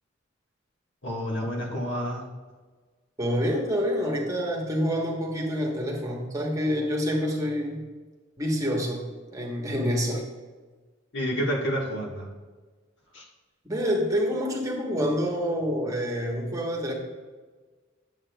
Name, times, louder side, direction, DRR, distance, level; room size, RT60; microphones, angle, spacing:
voice 1, 1.0-2.2 11.1-12.3 13.1-13.2, equal, 65° left, -2 dB, 1.7 m, -29 dB
voice 2, 3.2-7.8 8.4-9.1 9.3-10.2 13.6-16.9, equal, 15° right, -2 dB, 1.2 m, -27 dB
9.6 x 7.3 x 2.3 m, 1.4 s
head